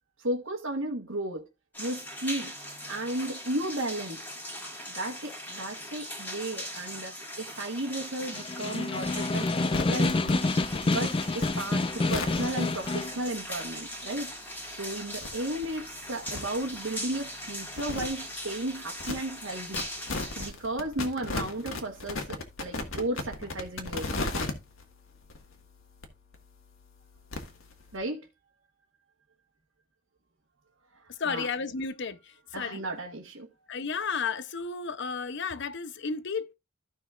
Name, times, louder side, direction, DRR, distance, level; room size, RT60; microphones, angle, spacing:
voice 1, 0.2-1.5 1.8-2.5 2.9-4.2 4.9-10.4 10.8-14.3 14.7-19.8 20.3-24.3 27.9-28.3 30.9-31.5 32.5-33.5, right 1 dB, 75° right, 1.4 m, -34 dB
sound 1, 1.7-20.5, equal, 10° left, 1.9 m, -40 dB
Snare drum, 8.2-13.2, left 2 dB, 25° left, 0.4 m, -28 dB
sound 2, 9.0-28.0, left 2 dB, 75° left, 1.7 m, -39 dB
voice 2, 31.2-32.8 33.7-36.5, left 5 dB, 60° left, 0.7 m, -33 dB
15.0 x 5.7 x 2.4 m
head